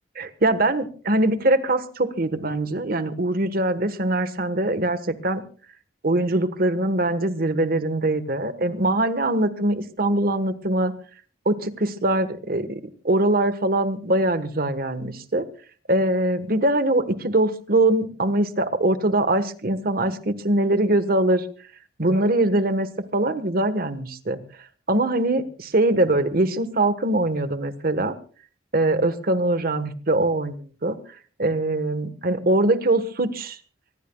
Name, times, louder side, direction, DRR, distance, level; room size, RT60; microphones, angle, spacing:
voice 1, 0.2-5.4 6.0-10.9 11.4-15.4 15.9-21.5 22.0-22.9 23.1-24.4 24.9-28.2 28.7-31.0 31.4-33.6, right 1 dB, 55° right, 12 dB, 1.3 m, -22 dB
24.5 x 19.5 x 2.3 m, 0.39 s
head